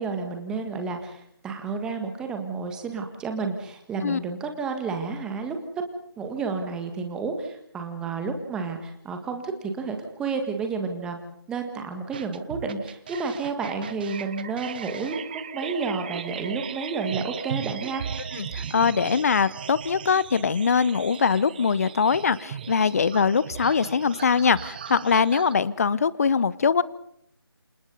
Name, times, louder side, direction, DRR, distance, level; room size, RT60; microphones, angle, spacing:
voice 1, 0.0-5.6 6.2-11.2 11.5-18.0, right 4 dB, 5° right, 5 dB, 1.7 m, -31 dB
sound 1, 12.1-25.5, right 7 dB, 20° right, 0.8 m, -37 dB
voice 2, 18.3-26.8, left 6 dB, 35° left, 19 dB, 0.9 m, -22 dB
28.5 x 27.5 x 4.1 m, 0.69 s
figure-of-eight pair, 160°, 13 cm